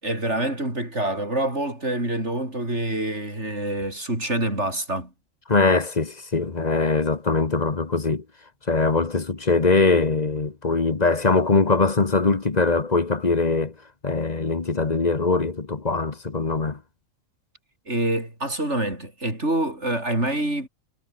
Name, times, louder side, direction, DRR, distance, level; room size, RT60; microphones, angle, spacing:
voice 1, 0.0-5.1 17.9-20.7, right 1 dB, 60° right, 7.8 m, -26 dB
voice 2, 5.5-8.2 8.7-13.7 14.0-16.8, left 3 dB, 35° left, 1.4 m, -22 dB
omnidirectional pair, 1.4 m